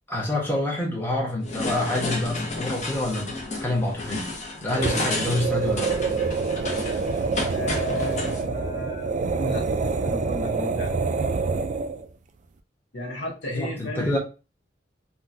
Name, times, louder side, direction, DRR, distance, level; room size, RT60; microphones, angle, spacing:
voice 1, 0.1-4.3 4.6-5.9 13.5-14.2, left 1 dB, 10° left, 0.9 m, -27 dB
sound 1, 1.4-8.4, left 2 dB, 40° left, 0.7 m, -32 dB
sound 2, 4.7-12.1, right 4 dB, 40° right, 0.3 m, -26 dB
voice 2, 7.5-9.1 9.4-9.7 10.0-11.0 12.9-14.2, equal, 75° left, 1.1 m, -33 dB
3.7 x 2.2 x 2.6 m
head